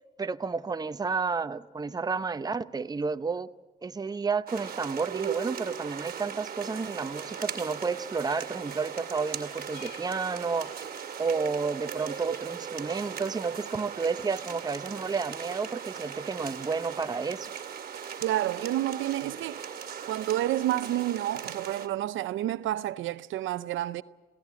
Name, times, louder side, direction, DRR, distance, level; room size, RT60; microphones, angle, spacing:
voice 1, 0.2-3.5 3.8-10.8 11.2-17.5, right 4 dB, 20° right, 0.7 m, -31 dB
sound 1, 4.5-21.9, right 7 dB, 50° right, 2.1 m, -38 dB
sound 2, 7.0-12.4, left 8 dB, 55° left, 2.0 m, -57 dB
voice 2, 18.2-19.7 20.1-24.0, right 13 dB, 80° right, 0.6 m, -29 dB
22.0 x 16.5 x 8.3 m
cardioid pair, 90°, 20 cm